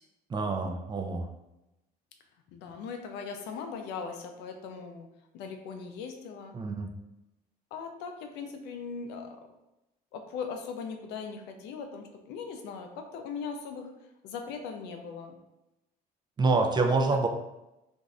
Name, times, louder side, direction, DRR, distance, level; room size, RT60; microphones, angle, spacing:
voice 1, 0.3-1.3 6.5-6.9 16.4-17.3, right 3 dB, 25° right, 4 dB, 0.4 m, -26 dB
voice 2, 2.5-5.1 5.3-6.5 7.7-9.3 10.1-13.9 14.2-15.4, left 5 dB, 90° left, 5 dB, 0.5 m, -39 dB
2.6 x 2.4 x 3.1 m, 0.93 s
cardioid pair, 110°, 17 cm